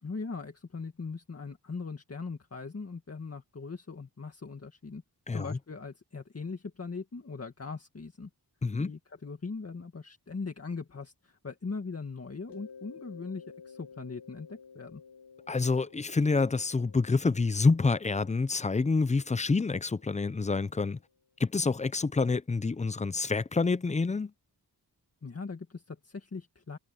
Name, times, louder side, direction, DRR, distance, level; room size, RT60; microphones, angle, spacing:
voice 1, 0.0-5.0 5.3-8.3 8.8-15.0 25.2-26.8, left 4 dB, 35° left, 2.0 m, -40 dB
voice 2, 5.3-5.6 8.6-8.9 15.5-21.0 21.4-24.3, left 4 dB, 20° left, 0.4 m, -27 dB
Mallet percussion, 12.5-21.1, left 5 dB, 90° left, 1.3 m, -53 dB
wide cardioid pair, 140°, 40 cm